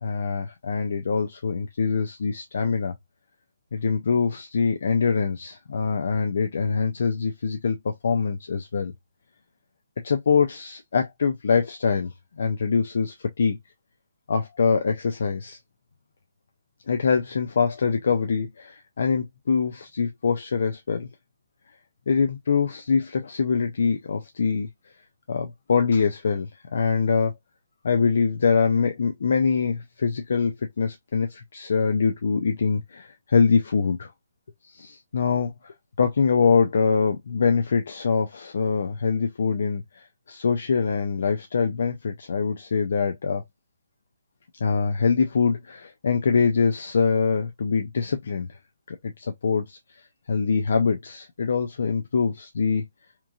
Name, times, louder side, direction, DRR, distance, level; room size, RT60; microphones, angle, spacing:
voice 1, 0.0-2.9 3.7-8.9 10.0-13.6 14.3-15.6 16.9-21.1 22.1-24.7 25.3-27.3 27.8-34.1 34.7-43.4 44.6-48.6 48.9-49.8 50.3-52.8, left 5 dB, 50° left, 0.4 m, -24 dB
2.9 x 2.5 x 2.3 m
hypercardioid pair, 180°, 0 cm